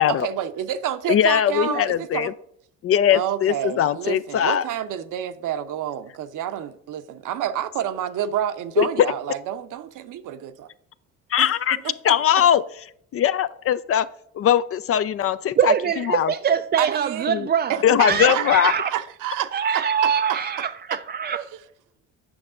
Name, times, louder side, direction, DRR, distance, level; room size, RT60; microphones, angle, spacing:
voice 1, 0.0-2.3 3.1-10.7 11.4-12.4 16.8-17.3 17.7-20.4 21.3-21.4, right 10 dB, 60° right, 0.8 m, -29 dB
voice 2, 1.1-2.3 2.8-4.6 8.8-8.9 11.3-11.8 12.0-12.6 13.1-14.1 14.3-16.3 17.3-17.5 17.8-18.7, left 10 dB, 40° left, 0.4 m, -20 dB
voice 3, 15.6-18.9 19.5-21.4, right 8 dB, 30° right, 0.4 m, -23 dB
8.8 x 5.9 x 3.8 m
hypercardioid pair, 55°, 36 cm